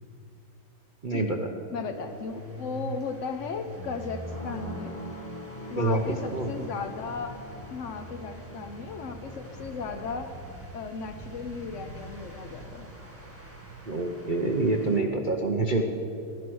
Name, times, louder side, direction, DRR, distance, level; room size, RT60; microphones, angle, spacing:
voice 1, 1.0-1.4 5.8-6.0 6.3-6.5 13.9-15.9, right 2 dB, 80° right, 3 dB, 0.4 m, -26 dB
voice 2, 1.7-5.0 5.7-7.4 7.7-10.3 10.7-12.9, left 5 dB, 85° left, 6 dB, 0.6 m, -36 dB
sound 1, 1.9-15.0, right 1 dB, 5° right, 1.7 m, -43 dB
sound 2, 4.0-9.5, equal, 20° left, 1.4 m, -43 dB
15.0 x 11.5 x 6.2 m, 2.7 s
omnidirectional pair, 2.3 m